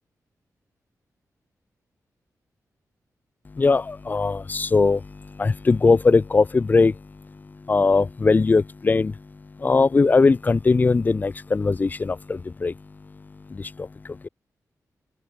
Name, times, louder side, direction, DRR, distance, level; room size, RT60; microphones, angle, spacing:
voice 1, 3.4-14.3, left 4 dB, 30° left, 2.7 m, -21 dB
open air
wide cardioid pair, 175°, 6 cm